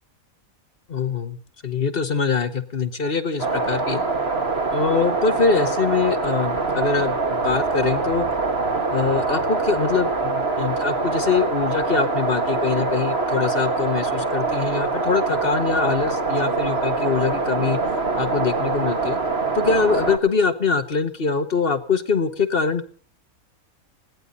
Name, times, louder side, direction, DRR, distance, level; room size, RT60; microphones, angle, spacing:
voice 1, 0.9-1.4 1.6-4.0 4.7-8.2 8.9-17.8 18.2-19.2 19.5-22.9, left 5 dB, 40° left, 10 dB, 1.4 m, -23 dB
sound 1, 3.4-20.2, right 3 dB, 45° right, 2.2 m, -24 dB
20.5 x 17.0 x 4.0 m, 0.41 s
omnidirectional pair, 1.5 m